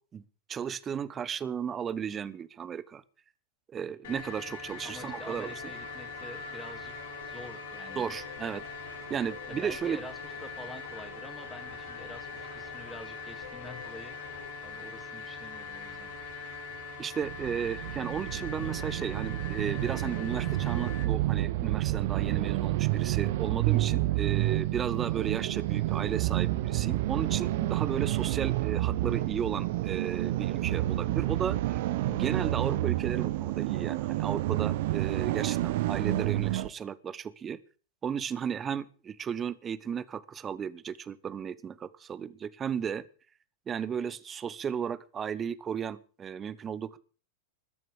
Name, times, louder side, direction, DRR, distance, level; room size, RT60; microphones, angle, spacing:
voice 1, 0.5-3.0 3.7-5.5 7.9-10.0 17.0-37.6 38.0-43.1 43.7-47.0, right 7 dB, 25° right, 15 dB, 1.3 m, -34 dB
sound 1, 4.0-21.0, left 4 dB, 55° left, 3.6 m, -42 dB
sound 2, 4.8-14.5, left 4 dB, 75° left, 1.9 m, -48 dB
voice 2, 4.8-6.9 7.2-8.1 9.5-14.3 14.6-16.1, left 1 dB, 5° left, 5 dB, 3.2 m, -47 dB
sound 3, 17.2-36.7, right 16 dB, 50° right, 0.9 m, -29 dB
21.0 x 7.7 x 6.8 m, 0.39 s
figure-of-eight pair, 90°, 0 cm